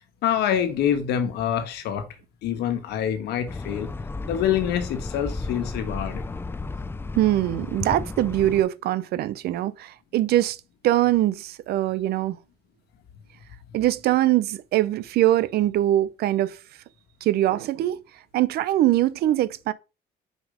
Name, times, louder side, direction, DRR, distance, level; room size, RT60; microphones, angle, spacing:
voice 1, 0.2-2.0 2.4-3.9 4.3-6.3, left 9 dB, 80° left, 1.4 m, -26 dB
sound 1, 3.5-8.6, left 3 dB, 15° left, 0.4 m, -33 dB
voice 2, 7.1-10.6 10.8-12.4 13.7-16.6 17.2-18.0 18.3-19.7, right 14 dB, 70° right, 0.5 m, -22 dB
5.1 x 5.1 x 5.0 m
cardioid pair, 110°, 17 cm